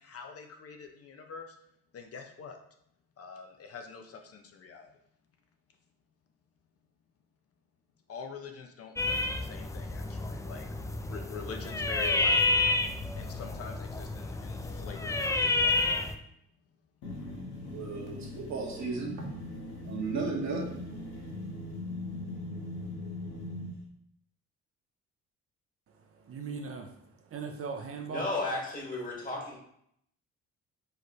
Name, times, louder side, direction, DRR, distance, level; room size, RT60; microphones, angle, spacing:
voice 1, 0.0-1.6 1.9-2.6 3.2-4.9 8.1-12.6 13.1-15.8, left 5 dB, 50° left, 5 dB, 0.6 m, -45 dB
sound 1, 9.0-16.1, left 2 dB, 10° left, 0.3 m, -30 dB
sound 2, 17.0-23.8, left 2 dB, 80° left, 1.4 m, -40 dB
voice 2, 17.7-19.1 19.8-20.7, right 4 dB, 65° right, -1 dB, 1.4 m, -34 dB
voice 3, 26.2-28.3, right 5 dB, 50° right, 4 dB, 0.6 m, -39 dB
voice 4, 28.1-29.6, left 2 dB, 30° left, -2 dB, 1.6 m, -33 dB
4.7 x 3.1 x 3.1 m, 0.72 s
cardioid pair, 90°, 30 cm